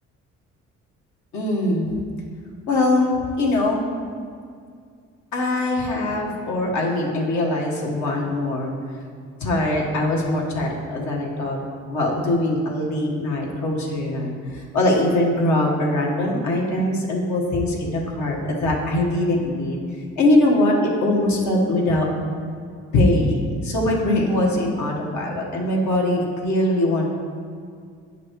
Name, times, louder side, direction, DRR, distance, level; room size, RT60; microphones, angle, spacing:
voice 1, 1.3-1.9 2.7-3.9 5.3-8.7 9.4-11.6 11.9-19.8 20.2-22.1 22.9-27.1, left 1 dB, 70° left, -2 dB, 1.6 m, -22 dB
9.2 x 5.9 x 3.2 m, 2.2 s
cardioid pair, 90°, 30 cm